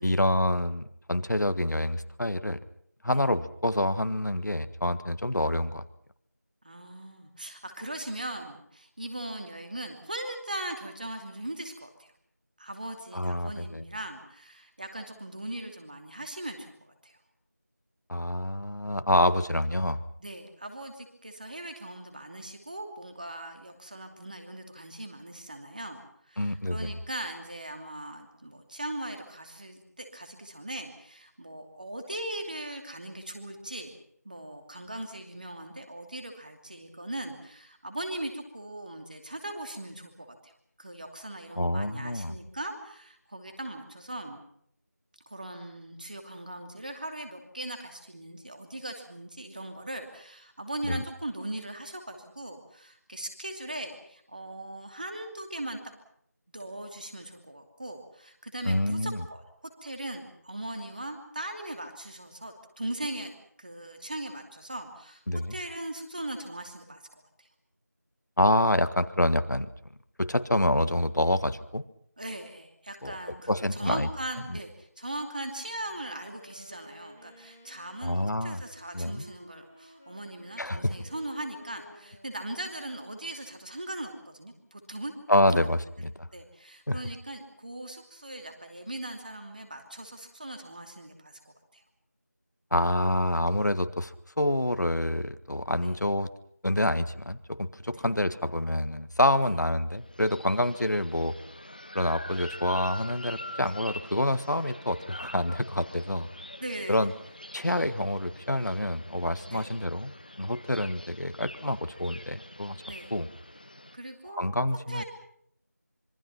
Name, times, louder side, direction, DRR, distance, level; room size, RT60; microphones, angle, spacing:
voice 1, 0.0-2.6 3.0-5.9 13.1-13.8 18.1-20.0 26.4-26.9 41.6-42.3 50.9-51.0 58.6-59.2 65.3-65.5 68.4-69.7 70.2-71.8 73.0-73.2 73.5-74.1 74.5-74.6 78.0-78.6 78.9-79.2 80.6-80.9 85.3-86.3 86.9-87.0 92.7-96.3 96.6-101.3 101.9-106.3 106.9-107.1 107.5-112.8 113.1-113.3 114.4-115.0, left 1 dB, 90° left, 12 dB, 1.6 m, -27 dB
voice 2, 6.6-12.1 12.6-17.2 20.2-34.0 34.2-40.5 40.8-44.4 45.3-55.8 56.5-63.3 63.6-65.2 65.5-67.0 67.4-67.5 72.2-85.1 85.5-85.7 86.0-91.8 95.8-95.9 97.9-98.0 106.6-107.0 109.4-109.7 112.9-113.1 113.9-114.4 114.9-115.0, right 1 dB, 30° right, 5 dB, 2.7 m, -39 dB
Wind instrument woodwind instrument, 75.6-83.7, equal, 10° right, 0.9 m, -54 dB
sound 1, 100.0-114.0, left 1 dB, 30° left, 1.0 m, -45 dB
25.5 x 23.5 x 5.8 m, 0.67 s
figure-of-eight pair, 180°, 9 cm